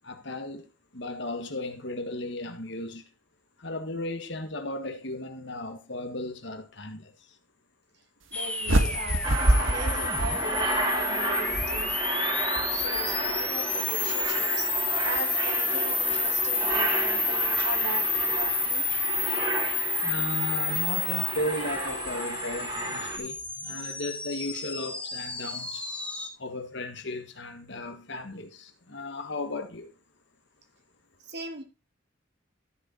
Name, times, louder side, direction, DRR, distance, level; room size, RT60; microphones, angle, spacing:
voice 1, 0.0-0.7 0.9-3.0 3.6-7.1 20.0-25.9 26.4-29.9, left 1 dB, 60° left, 1.6 m, -35 dB
sound 1, 8.3-26.3, left 3 dB, 5° left, 1.2 m, -30 dB
voice 2, 8.3-12.2 12.7-14.7 15.0-18.9 31.2-31.6, right 2 dB, 55° right, 2.2 m, -39 dB
sound 2, 8.6-11.0, right 1 dB, 75° right, 1.6 m, -25 dB
Aircraft, 9.2-23.2, right 2 dB, 25° right, 2.4 m, -32 dB
13.0 x 6.7 x 4.2 m
head